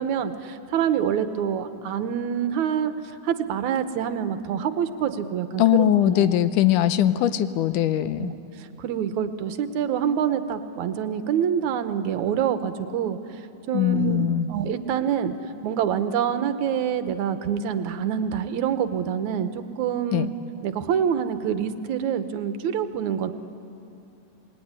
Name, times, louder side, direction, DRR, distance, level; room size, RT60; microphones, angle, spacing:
voice 1, 0.0-6.4 8.2-8.3 8.6-13.4 13.7-15.3 15.6-19.5 19.8-20.3 20.6-23.3, right 8 dB, 75° right, 10 dB, 2.3 m, -26 dB
voice 2, 5.6-8.3 13.7-14.5 20.1-20.3, left 12 dB, 80° left, 12 dB, 2.4 m, -21 dB
27.0 x 21.0 x 9.7 m, 2.7 s
omnidirectional pair, 3.6 m